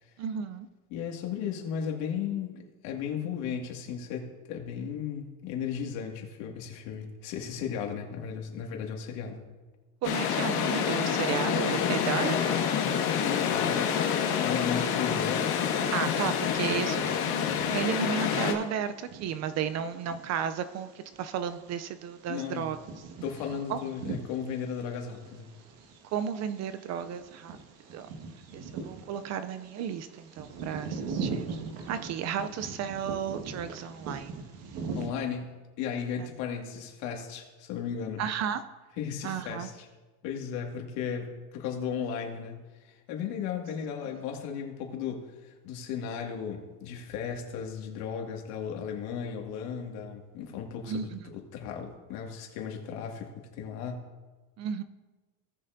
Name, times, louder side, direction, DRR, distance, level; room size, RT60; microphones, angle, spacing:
voice 1, 0.2-0.7 10.0-12.6 15.9-22.8 23.7-23.8 26.1-27.6 27.9-28.1 28.5-31.6 31.9-34.4 38.2-38.6 39.2-39.7 50.9-51.2 54.6-54.8, right 8 dB, 40° right, 12 dB, 0.4 m, -33 dB
voice 2, 0.9-9.4 13.2-15.5 22.3-22.7 23.2-25.5 35.0-38.2 39.0-39.9 40.2-54.1, left 7 dB, 75° left, 1 dB, 2.0 m, -35 dB
sound 1, 10.0-18.5, left 8 dB, 60° left, 1.6 m, -27 dB
Bird vocalization bird call bird song, 16.2-35.1, right 4 dB, 90° right, 1.7 m, -42 dB
17.5 x 6.6 x 2.6 m, 1.3 s
cardioid pair, 140°, 45 cm